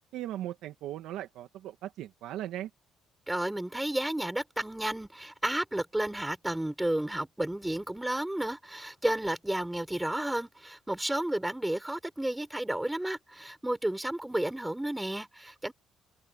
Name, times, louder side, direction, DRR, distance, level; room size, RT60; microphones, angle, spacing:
voice 1, 0.1-2.7, right 13 dB, 80° right, 1.9 m, -38 dB
voice 2, 3.3-15.7, right 1 dB, 5° right, 4.4 m, -32 dB
cardioid pair, 120°, 0 cm